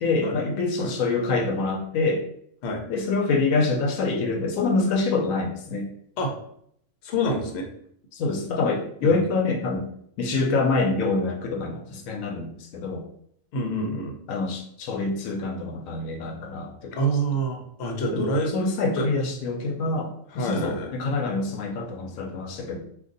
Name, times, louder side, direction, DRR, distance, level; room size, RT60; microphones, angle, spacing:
voice 1, 0.0-2.2 2.9-5.9 8.1-9.9 10.2-13.0 14.3-16.9 18.1-22.8, left 3 dB, 85° left, 3 dB, 1.0 m, -26 dB
voice 2, 7.0-7.7 9.0-9.1 13.5-14.1 16.9-18.5 18.9-19.1 20.3-20.9, right 1 dB, 60° left, 2 dB, 0.9 m, -26 dB
2.6 x 2.5 x 3.8 m, 0.68 s
omnidirectional pair, 1.4 m